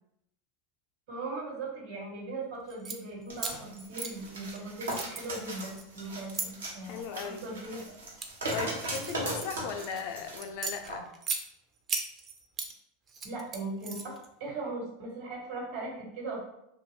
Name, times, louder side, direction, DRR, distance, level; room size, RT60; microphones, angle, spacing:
voice 1, 1.1-7.8 13.2-14.1 14.4-16.5, right 2 dB, 70° right, -3 dB, 1.2 m, -39 dB
sound 1, 2.7-3.0 3.4-4.6 4.9-6.5 7.1-7.5 7.9-10.0 10.4-11.4 11.9-12.7 13.1-14.3, right 4 dB, 35° right, 0.5 m, -36 dB
sound 2, 3.3-10.4 10.9-11.0, right 1 dB, 85° right, 0.7 m, -38 dB
voice 2, 6.8-7.4 8.5-11.1, left 6 dB, 60° left, 6 dB, 0.4 m, -37 dB
2.5 x 2.3 x 3.0 m, 0.80 s
hypercardioid pair, 95°, 0 cm